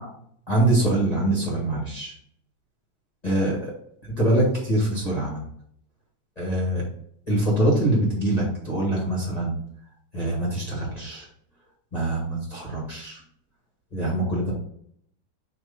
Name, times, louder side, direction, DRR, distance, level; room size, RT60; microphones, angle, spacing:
voice 1, 0.5-2.1 3.2-3.7 4.2-5.4 6.4-6.8 7.3-9.6 10.1-11.2 11.9-13.2 13.9-14.5, right 1 dB, 20° left, -5 dB, 1.2 m, -24 dB
6.0 x 3.0 x 5.4 m, 0.68 s
omnidirectional pair, 3.6 m